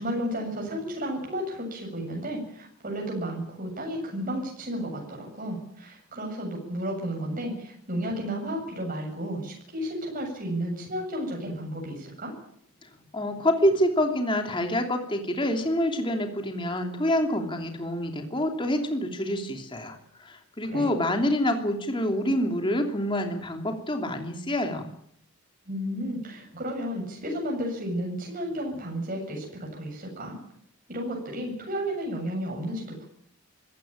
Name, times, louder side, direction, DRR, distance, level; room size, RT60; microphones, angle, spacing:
voice 1, 0.0-12.3 20.6-20.9 25.7-30.4 30.9-33.1, equal, 40° right, 0 dB, 7.5 m, -32 dB
voice 2, 13.1-20.0 20.2-24.9, left 1 dB, 20° left, 4 dB, 3.0 m, -27 dB
25.5 x 16.0 x 8.9 m, 0.69 s
head